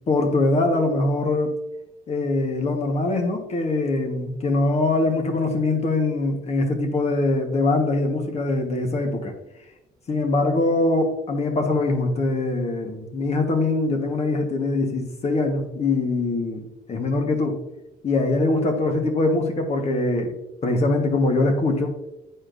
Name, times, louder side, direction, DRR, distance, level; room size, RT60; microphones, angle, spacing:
voice 1, 0.1-1.5 2.1-9.3 10.1-17.6 18.0-20.3 20.6-21.9, left 2 dB, 40° left, 4 dB, 1.3 m, -23 dB
9.7 x 4.3 x 2.5 m, 0.94 s
cardioid pair, 110°, 17 cm